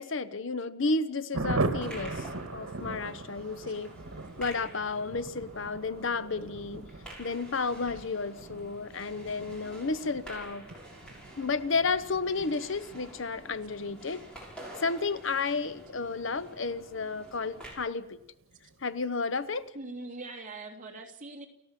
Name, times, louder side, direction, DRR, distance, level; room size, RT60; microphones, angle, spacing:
voice 1, 0.0-2.2 2.5-3.9 4.4-6.8 7.2-10.7 11.4-14.3 14.8-18.2 18.8-19.7, left 4 dB, 60° left, 14 dB, 0.9 m, -32 dB
Thunder, 1.3-17.5 17.7-17.8 18.1-18.3 18.5-18.9, right 2 dB, 80° right, 1.7 m, -40 dB
sound 1, 1.5-17.7, right 1 dB, 5° left, 6.7 m, -49 dB
voice 2, 19.7-21.5, right 2 dB, 35° right, 0 dB, 3.1 m, -42 dB
29.5 x 13.5 x 7.5 m, 0.83 s
head